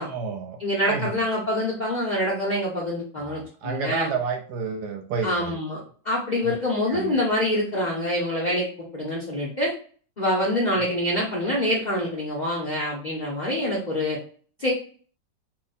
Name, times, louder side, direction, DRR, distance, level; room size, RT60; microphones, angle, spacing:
voice 1, 0.1-0.6 0.9-1.2 3.2-5.6 6.4-6.5 6.9-7.2, right 5 dB, 70° right, 5 dB, 1.0 m, -30 dB
voice 2, 0.6-4.1 5.2-5.8 6.0-8.7 8.9-9.7 10.2-14.2 14.6-14.7, left 1 dB, 75° left, -4 dB, 0.4 m, -25 dB
3.0 x 2.2 x 3.9 m, 0.44 s
omnidirectional pair, 2.0 m